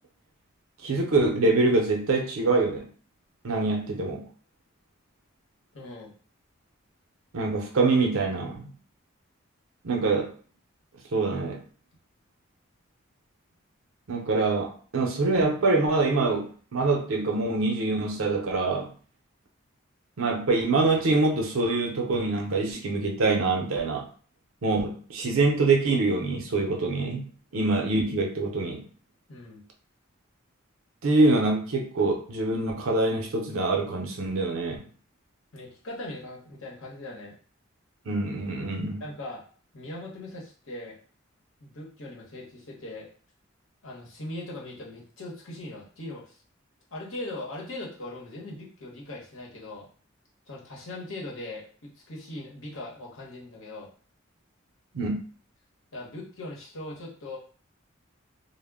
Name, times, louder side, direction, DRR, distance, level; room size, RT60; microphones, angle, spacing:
voice 1, 0.8-2.9 3.4-4.2 7.3-8.7 9.8-10.3 11.1-11.6 14.1-18.9 20.2-24.1 24.6-28.8 31.0-34.8 38.1-39.0 54.9-55.2, right 3 dB, 90° right, 2 dB, 0.6 m, -25 dB
voice 2, 5.7-6.1 29.3-29.7 35.5-37.3 39.0-39.4 39.7-41.0 41.6-43.1 43.8-46.4 46.9-49.9 50.5-53.9 55.9-57.4, left 1 dB, 80° left, -3 dB, 0.9 m, -40 dB
2.1 x 2.1 x 3.4 m, 0.42 s
head